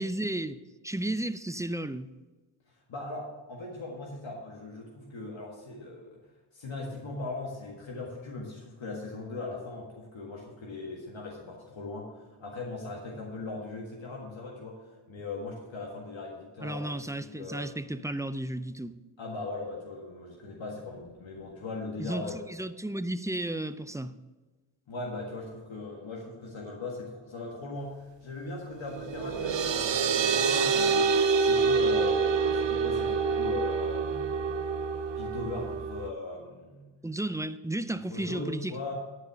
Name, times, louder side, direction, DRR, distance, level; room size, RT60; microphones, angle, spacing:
voice 1, 0.0-2.1 16.6-19.0 22.0-24.2 37.0-38.8, right 1 dB, 5° right, 0.4 m, -33 dB
voice 2, 2.9-6.2 6.5-17.7 19.2-22.4 24.9-31.1 31.4-34.4 35.2-36.9 38.1-38.9, left 3 dB, 75° left, 1.8 m, -39 dB
sound 1, 28.9-36.1, right 5 dB, 70° right, 0.7 m, -27 dB
12.0 x 4.9 x 6.7 m
cardioid pair, 50°, 46 cm